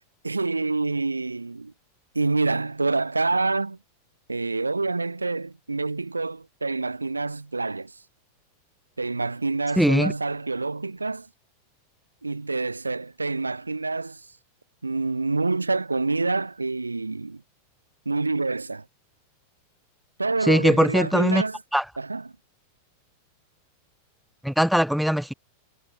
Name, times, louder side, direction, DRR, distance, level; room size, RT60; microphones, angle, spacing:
voice 1, 0.2-1.7 2.1-3.8 4.3-7.9 9.0-11.3 12.2-14.3 14.8-17.4 18.0-18.9 20.2-21.6 22.0-22.3, right 3 dB, 80° right, 1.7 m, -27 dB
voice 2, 9.8-10.1 20.5-21.4 21.7-21.8 24.4-25.3, equal, ahead, 1.2 m, -20 dB
figure-of-eight pair, 90°, 0 cm